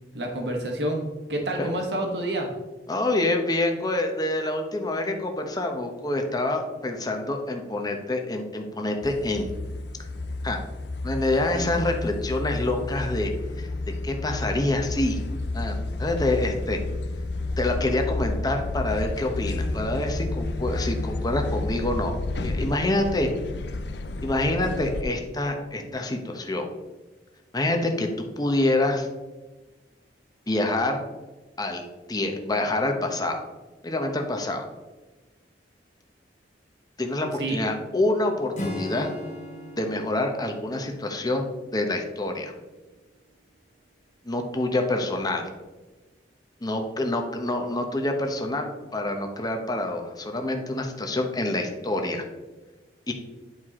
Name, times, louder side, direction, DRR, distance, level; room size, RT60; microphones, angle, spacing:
voice 1, 0.1-1.0 1.3-2.5 37.4-37.6, right 1 dB, 70° right, 2 dB, 1.3 m, -28 dB
voice 2, 2.9-9.5 10.4-10.6 11.0-13.3 13.6-13.7 14.0-15.2 15.5-16.8 17.6-22.1 22.4-23.3 24.2-26.7 27.5-29.1 30.5-31.0 31.6-33.4 33.8-34.7 37.0-39.1 39.8-41.5 41.7-42.5 44.2-45.5 46.6-52.2 53.1-53.2, left 2 dB, 25° left, 3 dB, 1.0 m, -26 dB
sound 1, 9.0-25.0, left 2 dB, 70° left, 0.5 m, -31 dB
Acoustic guitar / Strum, 38.5-42.0, left 1 dB, 45° left, 1.6 m, -37 dB
10.5 x 4.7 x 3.7 m, 1.2 s
head